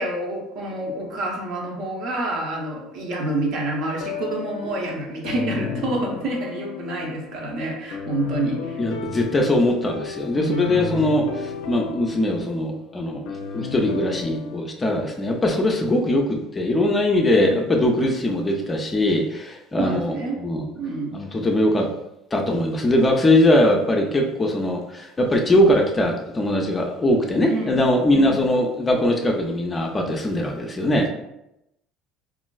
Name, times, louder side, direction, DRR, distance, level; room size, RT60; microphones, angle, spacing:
voice 1, 0.0-8.8 10.3-11.0 17.4-17.5 19.8-20.4 20.8-21.1 27.5-28.4, right 2 dB, 55° right, 0 dB, 0.7 m, -28 dB
sound 1, 3.9-14.6, left 6 dB, 80° left, 0.4 m, -34 dB
voice 2, 8.8-13.2 13.5-20.6 21.1-21.9 22.3-31.1, left 1 dB, 20° left, 1 dB, 0.4 m, -21 dB
3.0 x 2.5 x 2.3 m, 0.85 s
cardioid pair, 130°, 0 cm